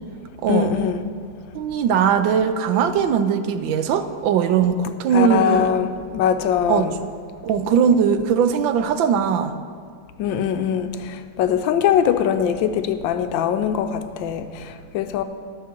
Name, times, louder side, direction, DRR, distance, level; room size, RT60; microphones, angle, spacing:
voice 1, 0.5-1.0 5.1-6.9 10.2-15.2, left 8 dB, 80° left, 1.3 m, -22 dB
voice 2, 1.5-5.7 6.7-6.8 7.4-9.6, right 7 dB, 85° right, 1.4 m, -20 dB
12.0 x 5.8 x 7.1 m
omnidirectional pair, 2.1 m